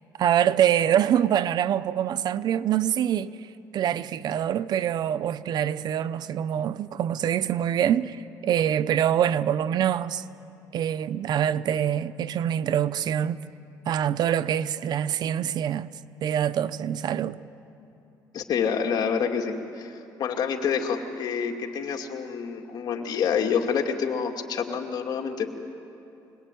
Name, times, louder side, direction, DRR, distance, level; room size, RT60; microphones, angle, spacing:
voice 1, 0.2-3.3 3.7-10.2 10.7-13.4 13.9-15.9 16.2-17.4, right 10 dB, 60° right, 0.7 m, -25 dB
voice 2, 18.3-25.5, left 6 dB, 60° left, 2.4 m, -27 dB
26.5 x 19.5 x 9.3 m
cardioid pair, 105°, 8 cm